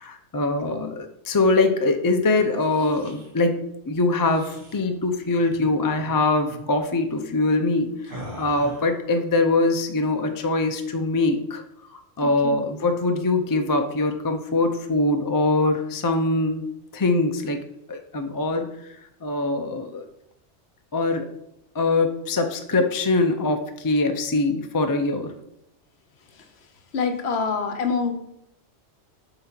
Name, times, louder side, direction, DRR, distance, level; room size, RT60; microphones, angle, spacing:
voice 1, 0.0-11.6 11.9-16.7 16.9-17.6 17.9-20.0 20.9-21.3 21.7-25.3, left 2 dB, 25° left, 6 dB, 0.4 m, -23 dB
sound 1, 2.5-3.3 4.2-4.8 5.5-5.7 5.9-6.2 6.5-6.7 8.0-9.0, equal, 45° right, 1.7 m, -41 dB
voice 2, 12.2-12.6 26.9-28.1, left 5 dB, 65° left, 7 dB, 1.0 m, -25 dB
7.6 x 3.9 x 4.4 m, 0.82 s
omnidirectional pair, 1.2 m